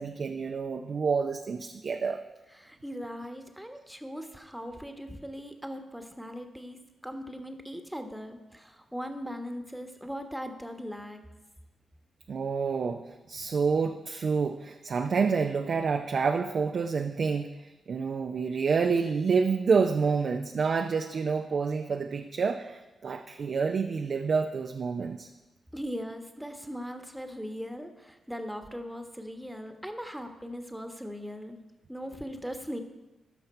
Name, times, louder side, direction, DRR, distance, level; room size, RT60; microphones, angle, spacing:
voice 1, 0.0-2.2 12.3-17.5 17.9-25.3, right 5 dB, 60° right, 5 dB, 0.5 m, -28 dB
voice 2, 2.5-11.2 25.7-31.6 31.9-32.8, equal, 5° right, 6 dB, 1.2 m, -39 dB
13.0 x 5.6 x 4.4 m, 1.1 s
supercardioid pair, 40°, 0 cm